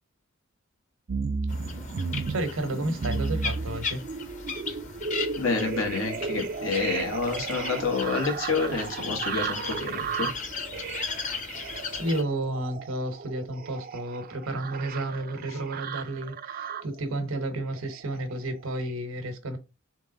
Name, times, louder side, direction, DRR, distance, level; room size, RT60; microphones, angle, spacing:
sound 1, 1.1-17.0 17.6-18.3 18.8-18.9, right 5 dB, 45° right, 0.4 m, -34 dB
sound 2, 1.5-12.2, left 5 dB, 40° left, 0.8 m, -37 dB
voice 1, 2.3-4.0 12.0-19.6, right 1 dB, 85° right, 1.1 m, -31 dB
voice 2, 5.3-10.3 15.5-15.6, left 4 dB, 90° left, 1.5 m, -29 dB
3.6 x 3.2 x 3.8 m
head